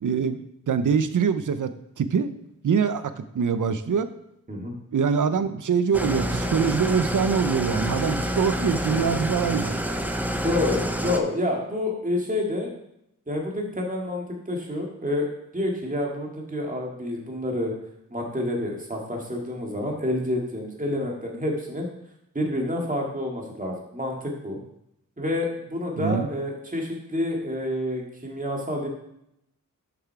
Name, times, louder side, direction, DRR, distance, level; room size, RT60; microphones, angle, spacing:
voice 1, 0.0-2.3 2.6-4.1 4.9-9.8 26.0-26.3, right 6 dB, 60° right, 12 dB, 0.7 m, -24 dB
Engine starting / Idling, 5.9-11.2, equal, 5° right, 0.7 m, -28 dB
voice 2, 10.4-12.7 13.3-15.3 15.5-17.7 18.1-21.9 22.3-24.6 25.2-28.9, left 1 dB, 25° right, 0 dB, 2.1 m, -28 dB
7.0 x 5.8 x 4.7 m, 0.78 s
cardioid pair, 60°, 35 cm